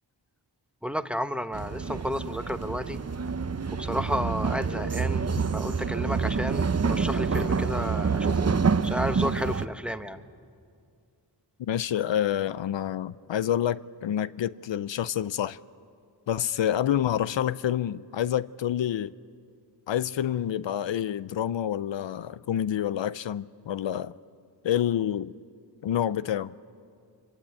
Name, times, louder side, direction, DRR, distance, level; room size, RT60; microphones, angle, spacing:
voice 1, 0.8-3.0 3.8-5.3 5.5-8.5 8.8-10.2, equal, ahead, 1.1 m, -32 dB
sound 1, 1.5-9.7, right 5 dB, 35° right, 0.8 m, -27 dB
voice 2, 11.6-15.6 16.3-19.1 19.9-24.1 24.6-25.3 25.8-26.5, left 10 dB, 75° left, 0.6 m, -28 dB
24.5 x 23.5 x 8.8 m
cardioid pair, 50°, 45 cm